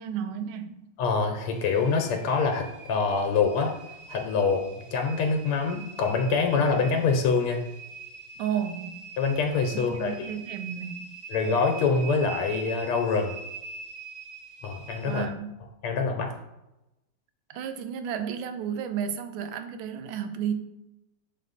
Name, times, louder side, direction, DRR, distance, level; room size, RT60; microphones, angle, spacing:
voice 1, 0.0-0.8 8.4-9.0 9.7-11.1 15.1-15.5 17.5-20.5, right 8 dB, 75° right, 1.3 m, -32 dB
voice 2, 1.0-3.8 4.1-7.6 9.2-10.3 11.3-13.3 14.6-15.3 15.8-16.3, left 4 dB, 90° left, 1.7 m, -25 dB
sound 1, 1.5-15.3, right 5 dB, 15° right, 0.8 m, -43 dB
6.3 x 4.2 x 4.0 m
omnidirectional pair, 2.4 m